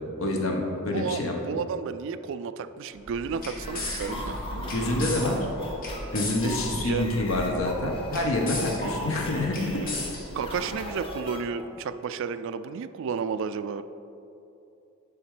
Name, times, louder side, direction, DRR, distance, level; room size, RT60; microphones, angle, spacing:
voice 1, 0.2-1.3 4.6-5.4 6.1-9.8, left 2 dB, 70° left, 1 dB, 1.1 m, -27 dB
voice 2, 0.9-5.1 6.4-7.3 9.7-9.9 10.3-13.8, right 6 dB, 65° right, 12 dB, 0.3 m, -32 dB
sound 1, 3.0-11.1, left 1 dB, 45° left, 1.2 m, -36 dB
sound 2, 3.5-11.8, left 1 dB, 25° left, 0.8 m, -41 dB
7.1 x 5.1 x 4.9 m, 2.7 s
head